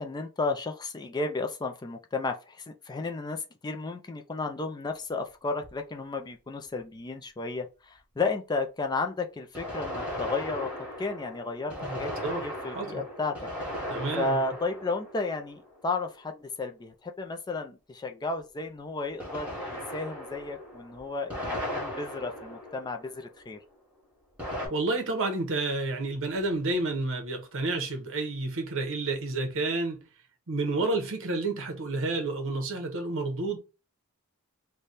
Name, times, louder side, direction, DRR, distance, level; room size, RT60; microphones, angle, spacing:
voice 1, 0.0-10.7 11.0-12.1 12.4-13.4 14.2-23.6, left 3 dB, 20° left, 0.4 m, -33 dB
sound 1, 5.6-5.7 9.5-16.0 19.2-23.4 24.4-24.7, equal, 5° right, 1.6 m, -37 dB
voice 2, 11.8-13.0 13.9-14.4 24.7-30.0 30.5-33.6, right 2 dB, 60° right, 1.0 m, -30 dB
3.3 x 2.2 x 4.0 m
head